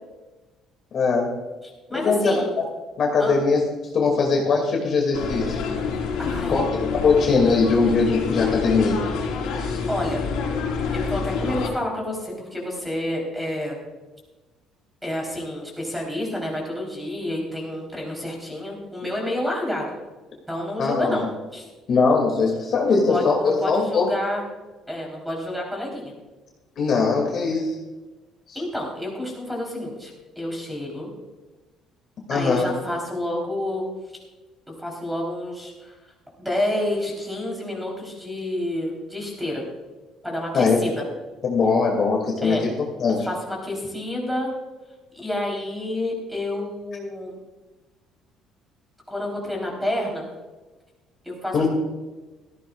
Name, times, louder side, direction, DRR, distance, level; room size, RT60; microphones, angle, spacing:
voice 1, 0.9-1.3 1.9-2.6 3.0-3.7 3.9-5.6 6.5-6.6 7.0-9.0 9.5-9.8 20.8-21.3 21.9-24.1 26.8-27.8 28.5-28.6 32.3-32.7 40.5-40.8 41.4-42.7 43.0-43.3 51.5-51.7, left 4 dB, 40° left, 0 dB, 2.2 m, -21 dB
voice 2, 1.9-2.5 3.2-3.3 5.7-5.8 6.2-6.6 9.6-10.2 10.9-13.8 15.0-19.9 20.5-21.2 21.5-21.7 22.9-24.4 24.9-26.1 28.6-31.1 32.3-33.8 34.8-35.9 36.4-39.6 40.2-41.0 42.4-42.7 43.2-44.5 45.1-47.4 49.1-50.3 51.2-51.7, left 1 dB, ahead, -1 dB, 3.5 m, -29 dB
sound 1, 5.1-11.7, left 5 dB, 85° left, 3.6 m, -27 dB
16.5 x 14.5 x 2.4 m, 1.2 s
cardioid pair, 175°, 0 cm